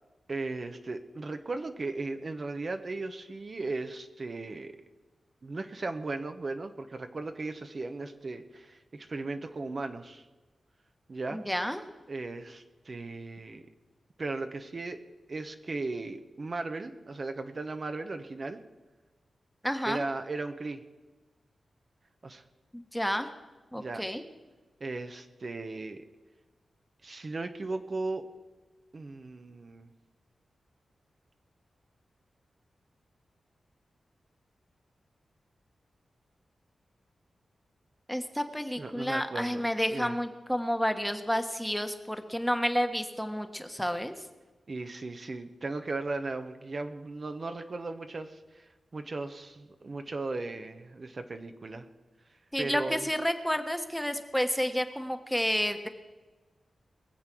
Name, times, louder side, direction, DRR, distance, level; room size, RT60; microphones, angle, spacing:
voice 1, 0.3-4.8 5.4-10.3 11.1-11.4 12.1-13.6 14.2-15.0 15.3-18.6 19.8-20.8 22.2-22.4 23.8-24.0 24.8-26.0 27.0-28.2 28.9-29.9 38.8-39.6 39.9-40.1 44.7-51.9 52.6-53.0, right 3 dB, 50° right, 7 dB, 1.0 m, -37 dB
voice 2, 11.3-11.8 19.6-20.0 22.7-23.3 23.7-24.2 38.1-44.1 52.5-55.9, equal, 5° left, 7 dB, 1.3 m, -30 dB
21.5 x 7.4 x 6.2 m, 1.2 s
cardioid pair, 65°, 0 cm